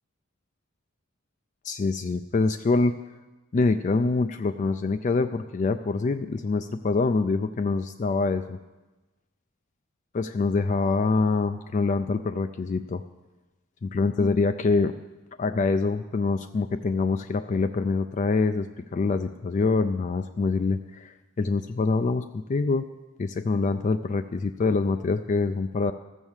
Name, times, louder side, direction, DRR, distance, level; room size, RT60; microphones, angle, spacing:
voice 1, 1.6-3.0 3.5-8.6 10.1-13.0 13.8-14.9 15.4-18.7 18.9-22.9 23.2-25.9, left 3 dB, 35° left, 8 dB, 0.3 m, -25 dB
14.5 x 6.3 x 7.2 m, 1.1 s
head